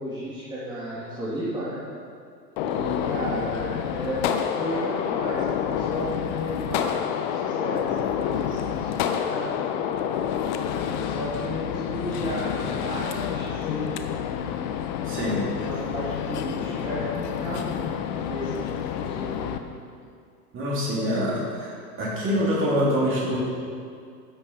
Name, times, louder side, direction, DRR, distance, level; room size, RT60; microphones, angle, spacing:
voice 1, 0.0-1.8 2.6-7.8 8.2-9.8 10.8-14.2 15.2-19.4, right 1 dB, 10° right, -10 dB, 2.6 m, -33 dB
Gunshot gunfire, 2.6-19.6, left 9 dB, 30° left, 0.6 m, -28 dB
voice 2, 15.1-15.4 20.5-23.4, equal, 25° right, -6 dB, 3.4 m, -25 dB
12.5 x 9.7 x 4.4 m, 2.3 s
figure-of-eight pair, 100°, 49 cm